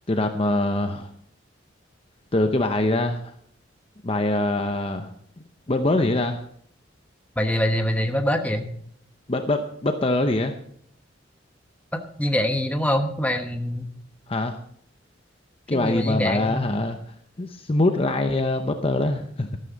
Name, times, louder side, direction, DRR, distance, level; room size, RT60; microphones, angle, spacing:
voice 1, 0.1-1.1 2.3-3.3 4.0-5.1 5.7-6.4 9.3-10.5 14.3-14.6 15.7-17.0 17.4-19.6, left 2 dB, 30° left, 6 dB, 0.7 m, -23 dB
voice 2, 7.4-8.7 11.9-13.9 15.7-16.7, left 1 dB, 10° left, 5 dB, 1.1 m, -24 dB
13.0 x 12.5 x 4.0 m, 0.63 s
head